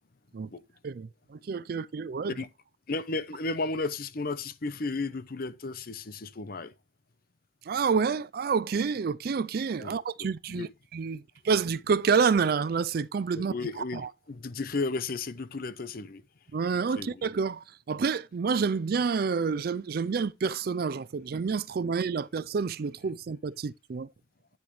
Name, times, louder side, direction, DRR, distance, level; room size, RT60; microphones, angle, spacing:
voice 1, 0.8-2.3 7.7-14.1 16.5-24.1, right 5 dB, 55° right, 0.4 m, -28 dB
voice 2, 2.9-6.7 9.8-10.7 13.3-16.2 17.0-17.2, left 3 dB, 55° left, 0.7 m, -34 dB
9.6 x 7.0 x 3.1 m
head